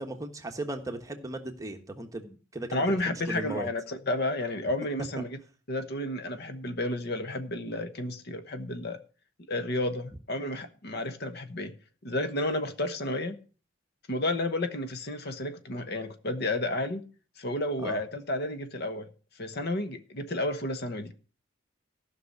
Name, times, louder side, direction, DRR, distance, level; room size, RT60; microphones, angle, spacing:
voice 1, 0.0-3.7 17.8-18.0, right 2 dB, 15° right, 1.3 m, -37 dB
voice 2, 2.7-5.4 5.7-9.0 9.5-11.8 12.0-13.4 14.1-17.0 17.4-19.1 19.4-21.1, left 1 dB, 55° left, 1.1 m, -31 dB
14.5 x 5.9 x 6.6 m
head